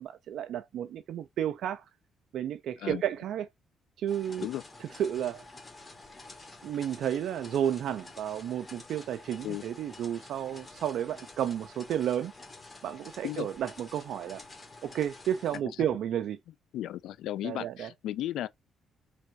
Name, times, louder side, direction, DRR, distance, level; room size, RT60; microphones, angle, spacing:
voice 1, 0.0-1.8 2.3-3.5 4.0-4.5 5.0-5.4 6.6-12.3 12.8-14.4 14.8-16.4 17.4-17.9, right 10 dB, 75° right, 0.5 m, -32 dB
sound 1, 4.1-15.6, left 2 dB, 25° left, 1.4 m, -49 dB
voice 2, 16.7-18.5, left 13 dB, 85° left, 0.4 m, -34 dB
3.4 x 2.6 x 4.6 m
cardioid pair, 90°, 0 cm